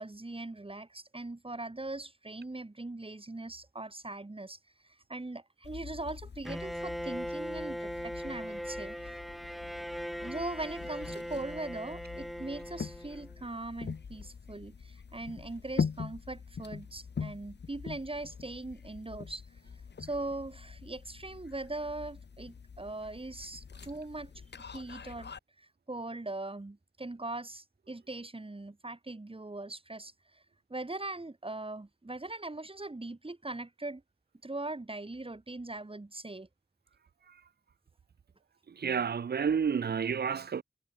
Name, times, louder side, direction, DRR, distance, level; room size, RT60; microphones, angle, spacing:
voice 1, 0.0-9.2 10.2-19.4 20.0-24.3 24.7-25.3 25.6-30.4 30.7-34.0 34.4-36.5, right 2 dB, 30° right, 4.4 m, -40 dB
sound 1, 5.6-25.4, left 6 dB, 75° left, 2.1 m, -43 dB
Bowed string instrument, 6.5-13.4, equal, ahead, 3.5 m, -40 dB
voice 2, 38.8-40.6, right 6 dB, 65° right, 0.7 m, -30 dB
cardioid pair, 50°, 18 cm